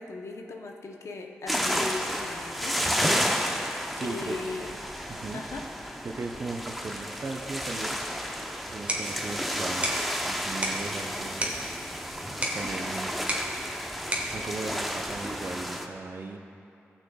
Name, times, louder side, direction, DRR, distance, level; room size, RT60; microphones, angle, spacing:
voice 1, 0.0-2.8 4.0-4.7 5.3-5.7, left 3 dB, 70° left, 2 dB, 0.9 m, -38 dB
sound 1, 1.5-15.9, equal, ahead, 0.8 m, -32 dB
voice 2, 4.0-4.4 5.1-5.4 6.0-8.0 8.6-9.9 10.2-11.5 11.8-11.9 12.4-13.1 14.3-16.4, right 3 dB, 50° right, 4 dB, 0.7 m, -37 dB
sound 2, 8.6-15.5, equal, 25° right, 1.6 m, -35 dB
15.5 x 6.3 x 2.3 m, 2.8 s
cardioid pair, 50°, 5 cm